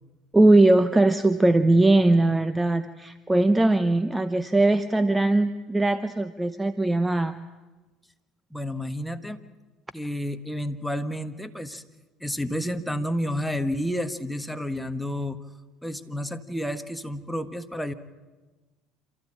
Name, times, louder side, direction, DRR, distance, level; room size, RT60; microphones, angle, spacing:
voice 1, 0.3-7.4, right 2 dB, 10° right, 11 dB, 0.9 m, -20 dB
voice 2, 8.5-9.4 9.9-11.8 12.2-15.4 15.8-17.9, equal, 5° left, 8 dB, 1.5 m, -30 dB
27.5 x 14.5 x 8.8 m, 1.2 s
supercardioid pair, 85°, 0 cm